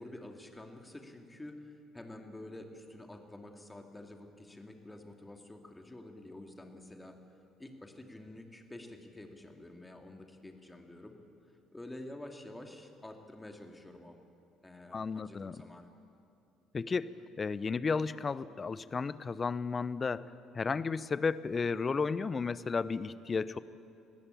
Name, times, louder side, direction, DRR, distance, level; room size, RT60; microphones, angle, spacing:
voice 1, 0.0-7.2 7.6-11.1 11.7-14.2 14.6-15.9, left 1 dB, 15° left, 3 dB, 2.8 m, -49 dB
voice 2, 14.9-15.6 16.7-20.3 20.5-23.6, left 5 dB, 30° left, 17 dB, 0.7 m, -33 dB
21.5 x 15.5 x 8.6 m, 2.6 s
figure-of-eight pair, 55°, 0 cm